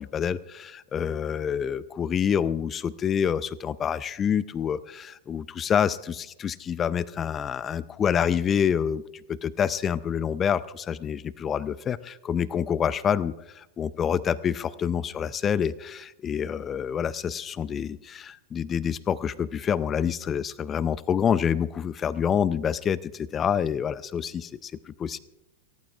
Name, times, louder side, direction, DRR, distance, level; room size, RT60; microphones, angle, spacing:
voice 1, 0.0-9.0 9.3-25.2, left 8 dB, 25° left, 20 dB, 0.4 m, -27 dB
29.5 x 14.5 x 2.4 m, 0.91 s
figure-of-eight pair, 95°, 0 cm